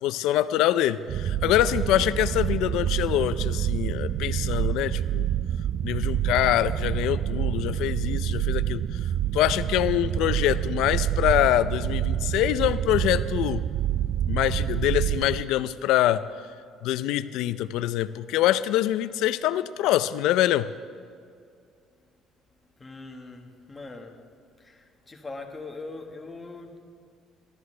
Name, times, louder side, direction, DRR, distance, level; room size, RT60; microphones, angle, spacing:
voice 1, 0.0-5.3 5.8-9.0 9.3-13.6 14.3-16.2 16.8-20.7, left 13 dB, 80° left, 14 dB, 0.5 m, -25 dB
sound 1, 1.1-15.4, right 11 dB, 50° right, 0.3 m, -27 dB
voice 2, 22.8-24.2 24.6-26.8, left 3 dB, 15° left, 2 dB, 1.6 m, -41 dB
21.0 x 13.0 x 3.4 m, 2.3 s
cardioid pair, 130°, 0 cm